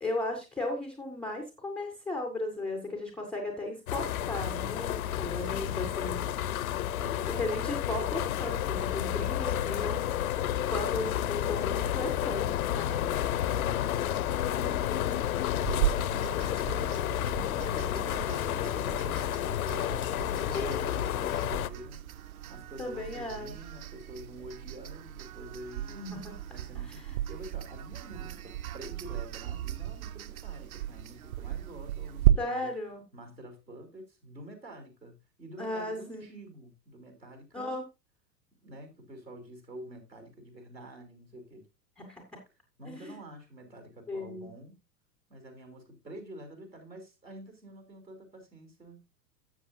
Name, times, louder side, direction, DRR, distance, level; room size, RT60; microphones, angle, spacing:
voice 1, 0.0-6.2 6.9-7.1 7.4-10.0 10.7-13.0 14.5-15.2 18.4-18.6 20.5-20.8 22.8-23.5 25.9-26.4 26.8-27.2 32.4-33.0 35.6-36.4 37.5-37.8 42.0-42.2 42.9-43.2 44.1-44.5, left 2 dB, ahead, 0.4 m, -36 dB
sound 1, 3.9-21.7, left 11 dB, 60° left, 0.7 m, -31 dB
voice 2, 5.2-6.0 7.0-7.5 13.0-15.9 16.6-17.0 17.2-22.0 22.5-26.0 26.5-32.7 33.1-37.8 38.6-41.7 42.8-44.8 45.3-49.0, right 1 dB, 90° right, 3.3 m, -48 dB
sound 2, 15.6-32.3, right 13 dB, 60° right, 0.8 m, -35 dB
12.5 x 7.6 x 2.5 m
figure-of-eight pair, 95°, 49 cm